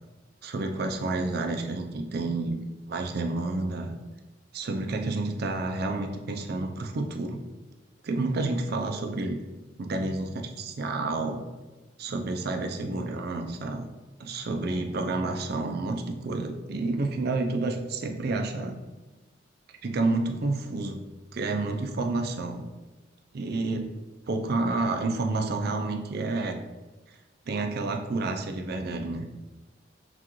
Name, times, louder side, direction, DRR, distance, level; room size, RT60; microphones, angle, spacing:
voice 1, 0.4-2.6 2.9-3.9 4.5-7.4 8.0-9.4 9.8-11.4 12.0-13.9 14.2-18.8 19.8-21.0 21.3-22.7 23.3-23.9 24.3-26.6 27.5-29.3, right 2 dB, 55° right, 4 dB, 0.5 m, -29 dB
5.9 x 2.4 x 3.0 m, 1.2 s
head